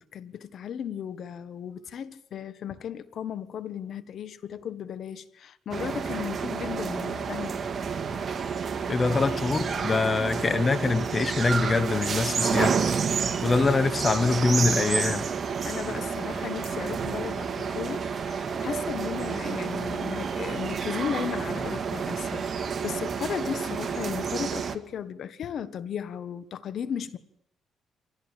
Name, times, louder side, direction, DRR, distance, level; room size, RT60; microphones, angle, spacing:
voice 1, 0.0-7.6 10.0-10.5 15.6-27.2, left 8 dB, 65° left, 1.4 m, -35 dB
sound 1, 5.7-24.8, right 6 dB, 45° right, 1.9 m, -30 dB
voice 2, 8.9-12.8 13.4-15.3, left 3 dB, 30° left, 1.1 m, -24 dB
25.5 x 16.5 x 9.1 m
cardioid pair, 90°, 0 cm